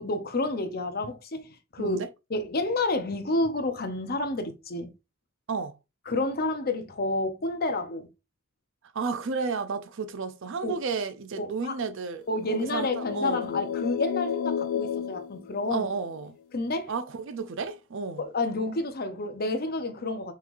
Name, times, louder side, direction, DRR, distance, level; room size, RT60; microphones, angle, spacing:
voice 1, 0.0-2.0 2.3-4.9 6.1-8.1 10.6-10.8 11.4-11.8 12.3-15.9 16.5-16.9 18.2-20.3, left 2 dB, 45° left, 0.8 m, -29 dB
voice 2, 8.9-13.6 15.7-16.4 16.9-18.2, right 4 dB, 60° right, 0.5 m, -32 dB
sound 1, 12.3-16.2, left 8 dB, 80° left, 0.4 m, -32 dB
5.6 x 3.2 x 2.5 m
head